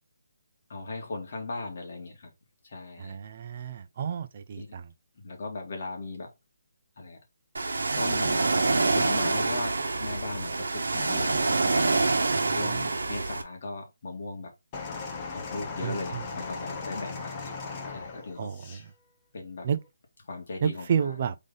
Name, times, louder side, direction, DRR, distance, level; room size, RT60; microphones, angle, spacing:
voice 1, 0.7-2.3 2.6-3.2 4.6-4.7 5.2-6.3 7.0-7.2 8.0-12.0 12.5-14.5 15.3-18.5 19.3-19.7 20.3-21.2, left 3 dB, 45° left, 1.9 m, -38 dB
voice 2, 3.0-4.9 12.3-12.9 15.8-16.2 18.4-18.9 19.6-19.8 20.6-21.4, right 7 dB, 35° right, 0.6 m, -31 dB
Ocean, 7.5-13.4, right 3 dB, 90° right, 1.1 m, -26 dB
sound 1, 14.7-18.9 19.7-19.9, left 4 dB, 20° left, 0.8 m, -38 dB
3.9 x 3.5 x 3.9 m
hypercardioid pair, 170°, 0 cm